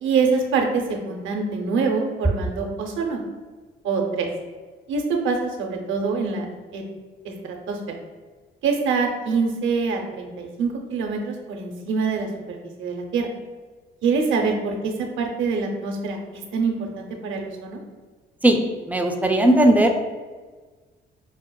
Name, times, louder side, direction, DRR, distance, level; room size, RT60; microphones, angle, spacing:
voice 1, 0.0-3.2 3.8-4.3 4.9-6.5 6.7-6.8 7.2-7.8 8.6-13.3 14.0-16.2 16.5-17.8, right 4 dB, 75° right, 2 dB, 0.6 m, -25 dB
voice 2, 18.9-20.0, right 1 dB, 10° right, 4 dB, 0.4 m, -17 dB
4.7 x 2.0 x 2.2 m, 1.4 s
cardioid pair, 90°, 20 cm